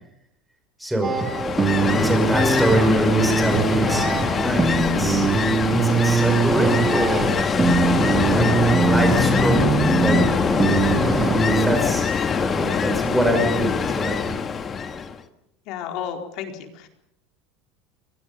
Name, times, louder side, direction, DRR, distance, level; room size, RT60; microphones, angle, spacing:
voice 1, 0.8-1.2 1.7-5.4 5.8-7.7 8.1-10.6 11.4-14.4, right 1 dB, ahead, 2 dB, 5.6 m, -25 dB
sound 1, 1.0-11.7, right 4 dB, 20° right, 2.4 m, -22 dB
Ocean, 1.1-15.2, left 6 dB, 25° left, 1.7 m, -23 dB
voice 2, 15.7-16.9, left 8 dB, 60° left, 4 dB, 4.4 m, -32 dB
29.5 x 22.0 x 5.5 m, 0.77 s
supercardioid pair, 135°, 0 cm